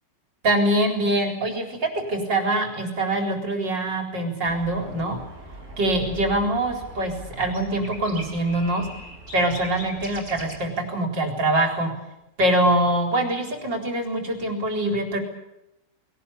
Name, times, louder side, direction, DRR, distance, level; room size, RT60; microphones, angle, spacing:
voice 1, 0.4-5.2 5.8-8.9 9.3-11.9 12.4-15.2, right 1 dB, 75° right, 3 dB, 4.9 m, -24 dB
sound 1, 4.4-10.6, equal, 40° right, 6.1 m, -41 dB
22.0 x 18.5 x 8.5 m, 0.87 s
omnidirectional pair, 1.9 m